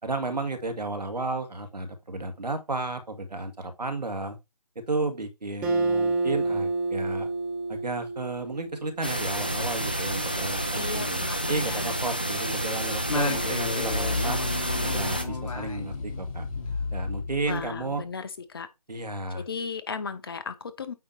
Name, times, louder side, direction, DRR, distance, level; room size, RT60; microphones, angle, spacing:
voice 1, 0.0-4.4 4.8-7.3 7.7-14.4 14.8-16.4 16.9-18.0 18.9-19.4, right 2 dB, 85° right, 2.0 m, -33 dB
Acoustic guitar, 5.6-9.1, right 3 dB, 5° right, 0.7 m, -28 dB
sound 1, 9.0-15.2, right 1 dB, 15° left, 0.3 m, -29 dB
voice 2, 10.7-11.9 17.5-18.7 19.3-20.9, left 5 dB, 35° left, 0.8 m, -35 dB
Singing, 13.1-17.8, left 4 dB, 55° left, 2.0 m, -32 dB
8.7 x 3.0 x 5.5 m
figure-of-eight pair, 160°, 21 cm